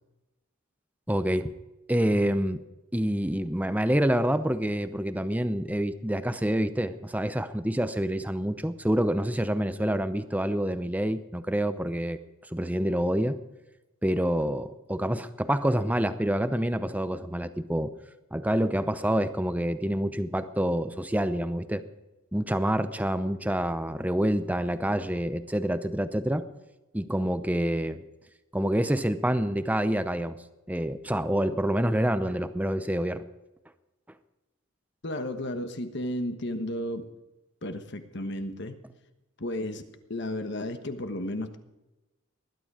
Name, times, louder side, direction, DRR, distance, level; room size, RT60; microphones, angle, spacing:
voice 1, 1.1-1.5 1.9-2.6 2.9-12.2 12.5-13.4 14.0-17.9 18.3-21.8 22.3-26.4 26.9-28.0 28.5-30.4 30.7-33.3, equal, 5° right, 11 dB, 0.6 m, -27 dB
voice 2, 35.0-37.0 37.6-38.8 39.4-39.8 40.1-41.6, left 1 dB, 50° left, 7 dB, 1.3 m, -33 dB
20.0 x 12.0 x 4.9 m, 1.0 s
head